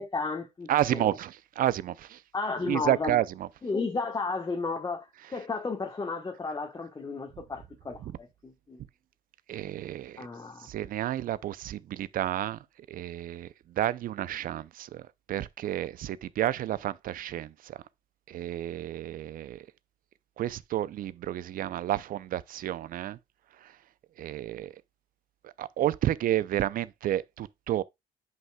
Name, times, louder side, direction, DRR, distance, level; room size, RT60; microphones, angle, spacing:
voice 1, 0.0-1.1 2.3-3.2 3.6-8.8 10.2-10.7, left 4 dB, 20° left, 1.2 m, -33 dB
voice 2, 0.7-2.2 2.6-3.5 9.5-10.3 10.6-12.6 12.9-17.8 18.3-19.7 20.4-23.2 23.6-23.7 24.2-24.7 25.4-27.8, right 12 dB, 55° right, 0.6 m, -31 dB
9.2 x 5.5 x 2.3 m
cardioid pair, 110°, 17 cm